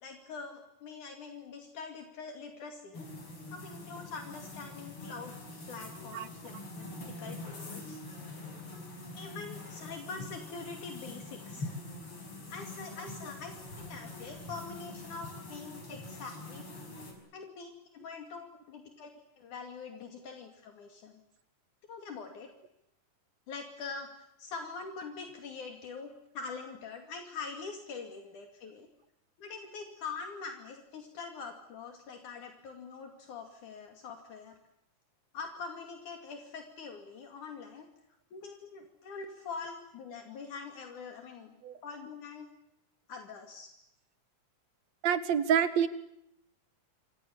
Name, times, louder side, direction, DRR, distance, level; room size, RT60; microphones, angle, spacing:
voice 1, 0.0-3.1 3.5-5.3 5.7-8.0 9.1-11.8 12.5-13.6 13.9-16.7 17.3-21.1 21.9-22.5 23.5-28.9 29.4-34.6 35.3-37.9 38.3-41.6 41.8-42.5 43.1-43.8, left 4 dB, 70° left, 4 dB, 3.9 m, -44 dB
sound 1, 2.9-17.1, left 2 dB, 45° left, 6.2 m, -44 dB
voice 2, 45.0-45.9, right 8 dB, 60° right, 12 dB, 2.6 m, -27 dB
27.5 x 27.0 x 7.1 m, 0.80 s
omnidirectional pair, 3.7 m